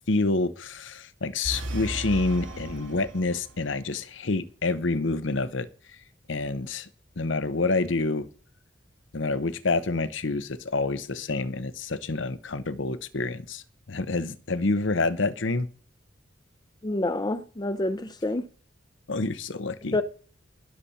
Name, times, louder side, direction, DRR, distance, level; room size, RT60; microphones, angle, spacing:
voice 1, 0.1-5.7 6.3-6.9 7.2-8.3 9.1-13.6 13.9-15.7 19.1-20.0, left 3 dB, 75° left, 0.9 m, -27 dB
sound 1, 1.4-3.7, right 1 dB, 85° right, 1.9 m, -35 dB
voice 2, 16.8-18.4 19.9-20.0, left 2 dB, 20° left, 0.6 m, -27 dB
20.5 x 7.1 x 4.2 m
head